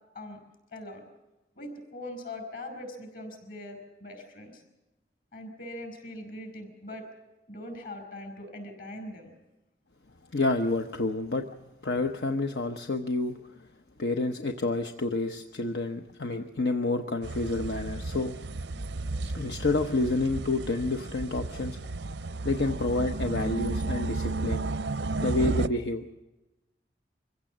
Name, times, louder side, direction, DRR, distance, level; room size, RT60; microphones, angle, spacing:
voice 1, 0.7-1.0 1.6-4.6 5.3-7.1 7.5-9.3, left 1 dB, 55° left, 6 dB, 5.3 m, -41 dB
voice 2, 10.3-11.5 11.8-13.7 14.0-18.4 18.7-18.9 19.3-21.8 22.4-24.6 25.2-26.0, left 2 dB, 80° left, 5 dB, 1.0 m, -29 dB
sound 1, 17.2-25.7, right 2 dB, 90° right, 0.7 m, -33 dB
24.5 x 16.0 x 7.4 m, 1.1 s
head